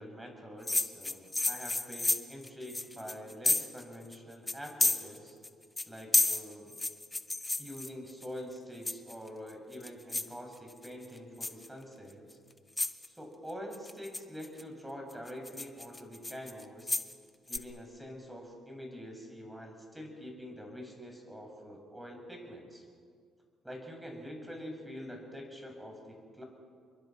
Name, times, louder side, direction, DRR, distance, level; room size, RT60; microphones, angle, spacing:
voice 1, 0.0-5.4 5.9-6.8 7.6-12.3 13.1-17.0 17.5-22.8 23.6-26.4, equal, 10° right, 2 dB, 7.8 m, -45 dB
sound 1, 0.7-3.8 4.1-4.2 4.5-5.5 5.8-8.3 8.9-9.3 9.7-10.3 10.7-11.1 11.4-11.7 12.3-12.4 12.8-13.1 13.7-14.6 15.1-17.1 17.5-17.6, left 2 dB, 20° left, 1.6 m, -31 dB
27.5 x 22.5 x 6.2 m, 2.1 s
hypercardioid pair, 50°, 0 cm